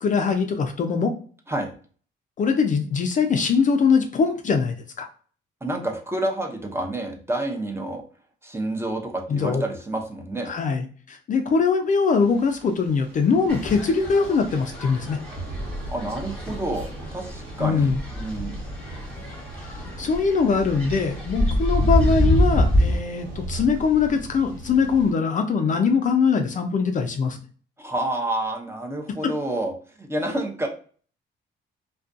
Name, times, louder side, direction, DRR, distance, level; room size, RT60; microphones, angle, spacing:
voice 1, 0.0-1.1 2.4-5.1 9.3-9.6 10.5-15.2 17.6-18.0 20.0-27.4, left 5 dB, 40° left, 5 dB, 0.4 m, -22 dB
voice 2, 5.6-8.0 8.4-10.5 15.9-18.6 27.8-29.7 30.0-30.7, right 1 dB, 10° right, 3 dB, 0.5 m, -29 dB
Thunder / Rain, 12.2-25.1, right 1 dB, 75° right, 1.1 m, -39 dB
sound 1, 13.5-23.0, left 1 dB, 5° left, 1.1 m, -26 dB
2.4 x 2.2 x 2.5 m, 0.43 s
cardioid pair, 90°, 20 cm